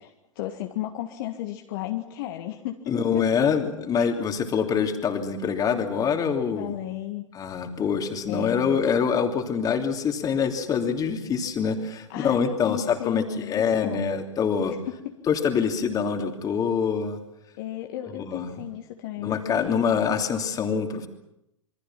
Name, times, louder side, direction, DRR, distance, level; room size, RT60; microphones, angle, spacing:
voice 1, 0.0-3.5 3.7-4.1 6.6-7.3 8.3-8.8 12.1-14.1 14.7-15.2 17.6-19.9, left 13 dB, 45° left, 4 dB, 1.8 m, -34 dB
voice 2, 2.9-6.7 7.3-14.7 15.3-17.2 18.1-18.5 19.2-21.1, left 6 dB, 20° left, 4 dB, 3.0 m, -25 dB
27.5 x 24.0 x 6.0 m, 0.83 s
figure-of-eight pair, 95°, 16 cm